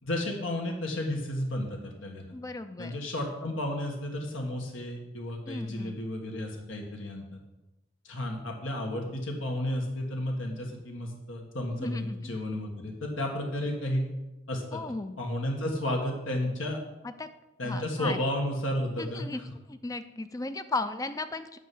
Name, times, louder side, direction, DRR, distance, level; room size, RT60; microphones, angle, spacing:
voice 1, 0.0-2.3 2.8-7.4 8.0-14.1 14.5-14.8 15.2-16.8 17.6-19.4, left 1 dB, 85° left, 1 dB, 1.7 m, -32 dB
voice 2, 2.3-2.9 5.5-6.0 11.7-12.4 14.7-15.2 17.0-17.3 17.6-18.2 19.0-19.4 19.7-21.6, left 2 dB, 15° left, 11 dB, 0.4 m, -36 dB
9.2 x 5.7 x 7.8 m, 1.0 s
head